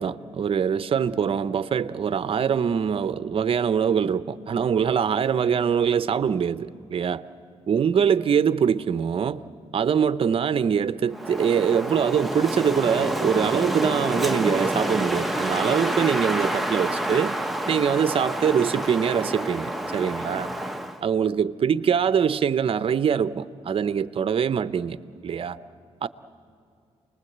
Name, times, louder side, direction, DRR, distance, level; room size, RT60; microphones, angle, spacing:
voice 1, 0.0-7.2 7.7-9.4 9.7-17.4 17.7-20.5 21.0-25.0 25.2-25.6 26.0-26.1, right 7 dB, 50° right, 0.7 m, -23 dB
Wind, 11.1-21.0, right 1 dB, ahead, 1.0 m, -28 dB
29.0 x 20.5 x 8.0 m
cardioid pair, 100°, 12 cm